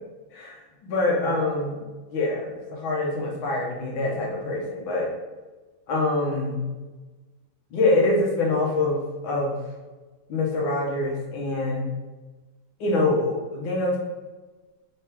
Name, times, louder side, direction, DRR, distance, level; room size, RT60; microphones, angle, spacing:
voice 1, 0.3-1.8 2.1-5.1 5.9-6.6 7.7-9.6 10.3-11.9 12.8-14.0, left 2 dB, 75° left, -2 dB, 1.8 m, -25 dB
4.4 x 3.5 x 2.9 m, 1.3 s
omnidirectional pair, 2.2 m